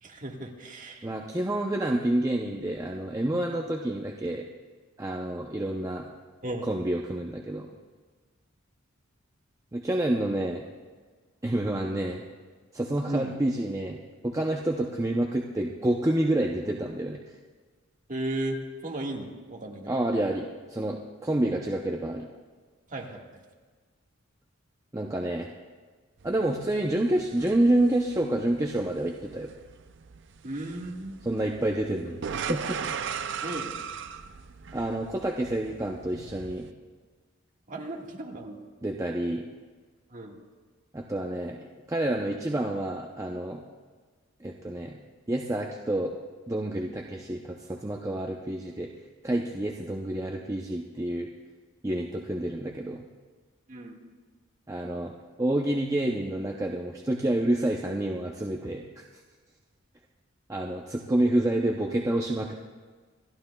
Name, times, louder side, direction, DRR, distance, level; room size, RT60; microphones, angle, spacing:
voice 1, 0.0-1.1 6.4-6.7 13.1-13.3 18.1-18.6 18.8-20.0 22.9-23.2 30.4-31.2 33.4-33.8 37.7-38.6 40.1-40.4 53.7-54.0, right 1 dB, 40° right, 0 dB, 1.6 m, -35 dB
voice 2, 1.0-4.5 5.0-6.1 6.7-7.7 9.7-10.6 11.4-12.2 12.7-14.0 14.2-17.2 19.9-22.3 24.9-25.5 26.2-29.5 31.2-32.8 34.7-36.7 38.8-39.4 40.9-41.6 41.9-43.6 44.4-45.0 45.3-46.1 46.5-48.9 49.2-51.3 51.8-53.0 54.7-55.1 55.4-59.0 60.5-62.5, right 1 dB, 15° right, 0 dB, 0.6 m, -28 dB
sound 1, 26.2-36.7, right 6 dB, 60° right, 0.5 m, -39 dB
27.5 x 12.0 x 2.3 m, 1.5 s
head